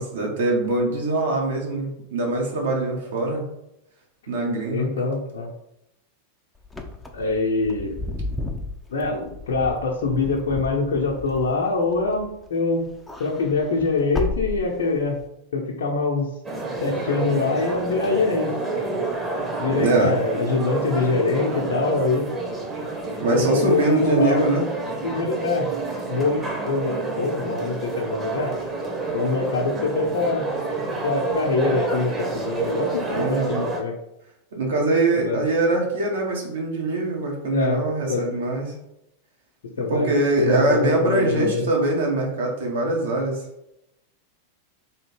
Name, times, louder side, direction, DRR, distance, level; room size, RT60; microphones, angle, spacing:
voice 1, 0.0-3.5 4.3-4.9 19.7-20.1 23.2-24.7 33.1-33.6 34.5-38.7 39.9-43.4, right 2 dB, 60° right, 0 dB, 1.2 m, -23 dB
voice 2, 4.7-5.5 7.1-8.0 8.9-12.9 13.2-15.2 15.5-16.3 16.8-18.9 19.6-22.3 23.3-24.5 25.0-25.7 26.1-28.5 29.1-30.5 31.0-33.9 35.2-35.4 37.5-37.8 38.1-38.2 39.8-40.1 40.4-41.7, left 3 dB, 60° left, -3 dB, 0.7 m, -24 dB
Wind / Car, 6.6-12.5 12.8-15.2, left 2 dB, 5° left, 0.5 m, -33 dB
sound 1, 16.4-33.8, right 3 dB, 15° right, 0.9 m, -29 dB
3.5 x 2.7 x 4.4 m, 0.83 s
figure-of-eight pair, 90°, 0 cm